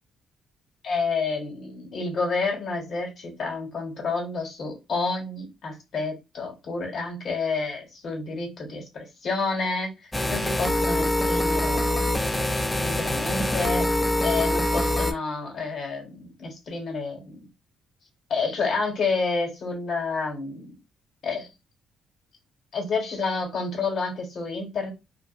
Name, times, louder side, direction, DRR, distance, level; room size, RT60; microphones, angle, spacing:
voice 1, 0.8-12.0 12.8-13.9 14.2-17.5 18.3-20.7 21.2-21.5 22.7-24.9, left 4 dB, 60° left, 1 dB, 1.2 m, -29 dB
sound 1, 10.1-15.1, left 1 dB, 10° left, 0.3 m, -24 dB
2.5 x 2.4 x 2.5 m, 0.24 s
cardioid pair, 90°, 0 cm